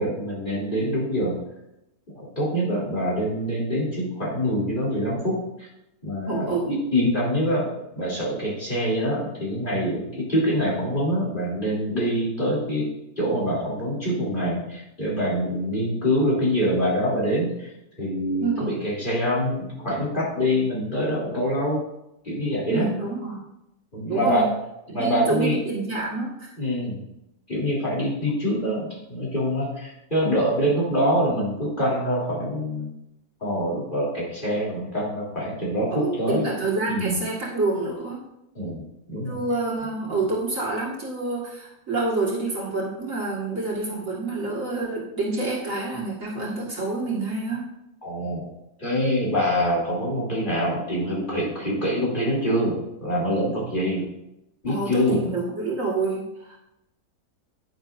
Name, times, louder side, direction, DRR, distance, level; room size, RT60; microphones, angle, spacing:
voice 1, 0.0-1.3 2.1-5.7 6.0-7.7 7.9-12.9 13.2-17.7 18.0-21.8 22.2-22.9 23.9-24.5 24.9-25.6 26.6-27.0 27.5-32.9 33.4-36.5 36.9-37.2 38.5-39.4 48.0-48.5 48.8-54.1 54.6-55.2, equal, 30° left, -6 dB, 3.4 m, -25 dB
voice 2, 6.3-6.7 18.4-18.7 22.7-23.4 24.1-24.5 24.9-26.5 35.9-38.2 39.3-47.6 54.7-56.6, right 3 dB, 50° right, -4 dB, 2.3 m, -27 dB
10.0 x 9.9 x 2.6 m, 0.84 s
omnidirectional pair, 1.8 m